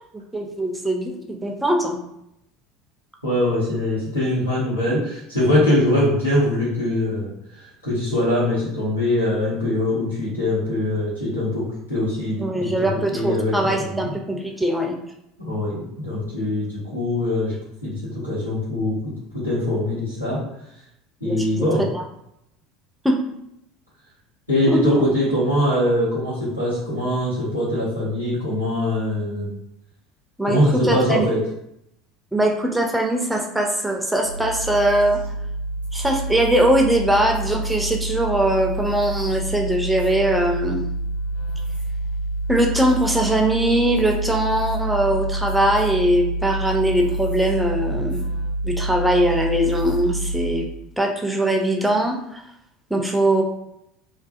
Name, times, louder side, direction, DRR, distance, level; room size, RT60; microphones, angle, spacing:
voice 1, 0.3-2.0 12.4-14.9 21.2-21.7 21.9-22.0 23.0-23.2 24.7-25.0 30.4-31.3 32.3-35.2 35.9-40.8 42.5-48.2 48.6-50.7 51.0-52.4 52.9-53.4, right 1 dB, 5° right, 1 dB, 0.4 m, -21 dB
voice 2, 3.2-14.1 15.4-20.4 21.2-21.9 24.5-29.5 30.4-31.4, left 1 dB, 85° left, -10 dB, 1.0 m, -22 dB
sound 1, 34.2-50.8, right 2 dB, 85° right, 0.7 m, -27 dB
2.4 x 2.3 x 2.3 m, 0.79 s
figure-of-eight pair, 70°, 0 cm